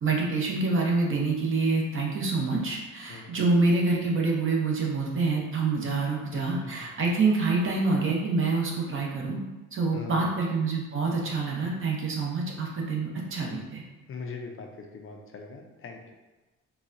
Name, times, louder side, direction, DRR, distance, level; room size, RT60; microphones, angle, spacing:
voice 1, 0.0-9.4 9.7-13.8, right 3 dB, 45° right, -2 dB, 0.8 m, -26 dB
voice 2, 3.1-3.5 6.3-6.4 9.9-10.4 14.1-16.0, left 4 dB, 45° left, 2 dB, 0.5 m, -41 dB
4.0 x 2.2 x 2.6 m, 1.1 s
cardioid pair, 90°, 30 cm